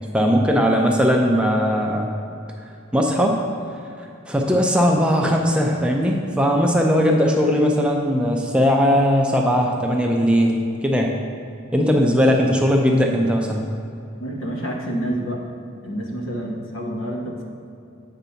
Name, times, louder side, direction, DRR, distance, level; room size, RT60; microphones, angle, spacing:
voice 1, 0.1-2.1 2.9-3.4 4.0-11.2 11.7-13.7, equal, 5° right, 0 dB, 0.4 m, -19 dB
voice 2, 14.2-15.5 15.8-17.4, right 1 dB, 80° left, -1 dB, 1.2 m, -28 dB
8.1 x 4.0 x 5.6 m, 2.6 s
head